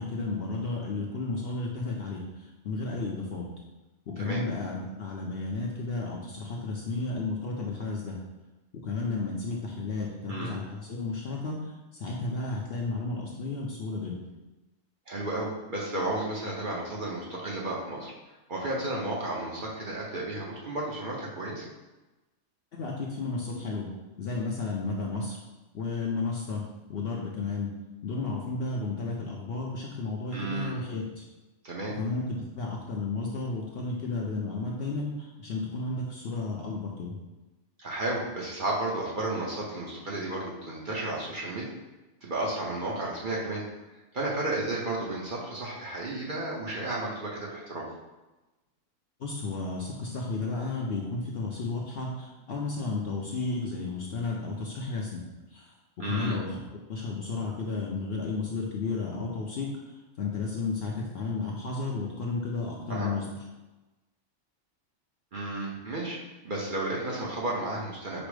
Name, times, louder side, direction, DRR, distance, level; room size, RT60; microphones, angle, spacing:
voice 1, 0.0-3.5 4.1-8.2 8.7-14.2 22.7-23.9 24.2-25.4 25.7-26.6 26.9-27.7 28.0-31.2 31.9-37.2 49.2-55.2 55.5-55.7 56.0-56.6 56.9-63.3, left 3 dB, 60° left, -2 dB, 0.7 m, -33 dB
voice 2, 15.1-18.1 18.5-21.7 30.3-30.8 31.6-31.9 37.8-41.7 42.2-43.6 44.1-47.9 56.0-56.4 62.9-63.1 65.3-68.3, right 2 dB, 45° right, -4 dB, 0.8 m, -33 dB
5.1 x 2.0 x 4.7 m, 1.1 s
omnidirectional pair, 1.4 m